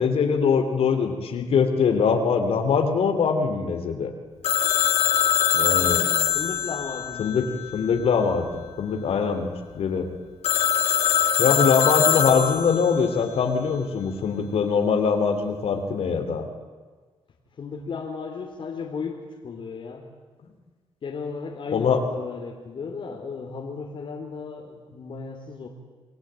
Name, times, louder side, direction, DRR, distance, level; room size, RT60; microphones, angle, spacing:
voice 1, 0.0-4.1 5.5-6.1 7.2-7.5 7.7-10.1 11.4-16.5 21.7-22.0, left 5 dB, 70° left, 5 dB, 3.3 m, -22 dB
Telephone, 4.4-8.1 10.4-13.0, left 9 dB, 90° left, 2.0 m, -23 dB
voice 2, 6.3-7.6 17.6-20.1 21.0-25.7, left 5 dB, 55° left, 0 dB, 3.4 m, -35 dB
29.0 x 20.0 x 9.0 m, 1.4 s
cardioid pair, 110°, 10 cm